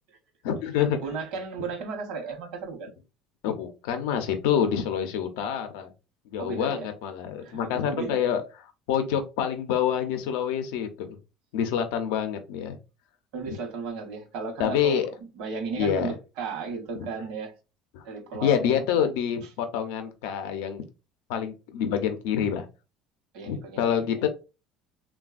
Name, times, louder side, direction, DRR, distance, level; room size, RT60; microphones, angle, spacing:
voice 1, 0.4-1.0 3.4-5.9 6.3-8.4 8.9-11.1 11.5-12.8 13.5-13.6 14.6-15.1 15.8-16.1 17.0-17.1 17.9-18.0 18.4-20.8 21.3-22.6 23.5-24.3, left 8 dB, 90° left, 0.5 m, -27 dB
voice 2, 0.9-2.9 6.4-6.9 7.4-8.3 13.3-17.5 18.0-19.0 23.3-24.2, right 4 dB, 75° right, 0.9 m, -35 dB
3.3 x 2.2 x 2.3 m
cardioid pair, 135°, 0 cm